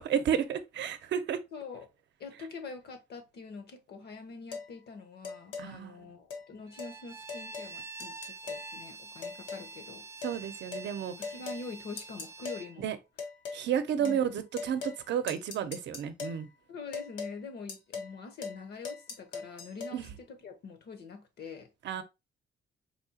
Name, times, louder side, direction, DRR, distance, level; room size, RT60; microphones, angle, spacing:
voice 1, 0.0-1.4 5.6-5.9 10.2-11.1 12.8-13.0 13.5-16.5 19.9-20.1 21.8-22.0, right 8 dB, 70° right, 0.6 m, -31 dB
voice 2, 1.5-1.9 2.2-10.1 11.2-12.9 14.0-14.2 16.7-21.7, left 4 dB, 60° left, 0.9 m, -45 dB
sound 1, 4.5-4.7 5.2-5.7 6.3-6.4 6.8-6.9 7.3-7.7 8.0-8.7 9.2-9.7 10.2-10.4 10.7-10.9 11.2-11.6 12.0-12.6 13.2-13.6 14.0-14.2 14.6-15.0 15.3-16.4 16.9-17.3 17.7-18.1 18.4-18.6 18.8-19.9, left 5 dB, 85° left, 1.0 m, -39 dB
Bowed string instrument, 6.7-12.8, right 3 dB, 15° right, 0.3 m, -46 dB
4.2 x 2.8 x 2.7 m
cardioid pair, 145°, 19 cm